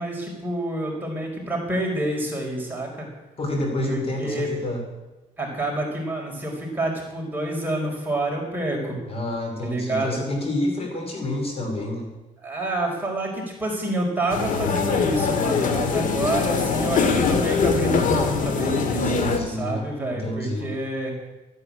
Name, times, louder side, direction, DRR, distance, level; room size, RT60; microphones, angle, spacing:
voice 1, 0.0-3.1 3.9-4.5 5.4-9.0 9.6-10.2 12.4-21.1, right 1 dB, 15° right, -2 dB, 4.7 m, -28 dB
voice 2, 3.4-4.8 9.1-12.1 19.0-20.7, left 1 dB, 40° left, 3 dB, 2.9 m, -28 dB
sound 1, 14.3-19.4, left 5 dB, 65° left, 2.0 m, -22 dB
13.0 x 9.8 x 8.5 m, 1.1 s
cardioid pair, 120°, 15 cm